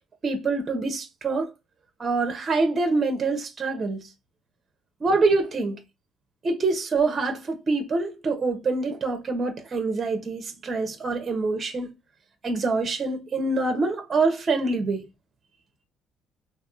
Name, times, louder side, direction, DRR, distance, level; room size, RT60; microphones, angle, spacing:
voice 1, 0.2-1.5 2.0-4.0 5.0-5.8 6.4-11.9 12.4-15.0, right 3 dB, 35° right, 0.8 m, -25 dB
3.4 x 2.6 x 2.5 m
supercardioid pair, 80°, 0 cm